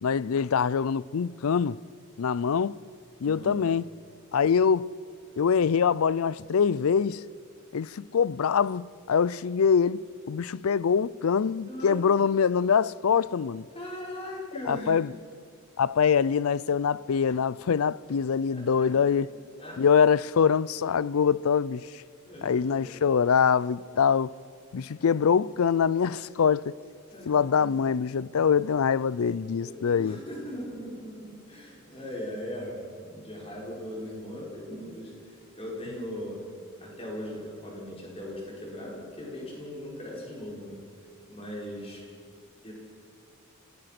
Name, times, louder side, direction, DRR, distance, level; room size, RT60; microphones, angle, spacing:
voice 1, 0.0-1.8 2.2-2.8 3.2-3.9 4.3-4.9 5.4-7.2 7.7-10.0 10.3-13.6 14.7-15.1 15.8-19.3 19.8-21.9 22.4-24.3 24.7-26.7 27.3-30.2, left 6 dB, 90° left, 0.4 m, -24 dB
voice 2, 3.2-3.5 11.7-12.0 13.7-15.2 18.5-19.2 19.6-19.8 22.2-23.0 27.1-27.9 29.6-36.4 36.8-40.8 41.3-42.0 42.6-42.7, equal, 25° left, 5.2 m, -39 dB
29.5 x 17.5 x 5.9 m
head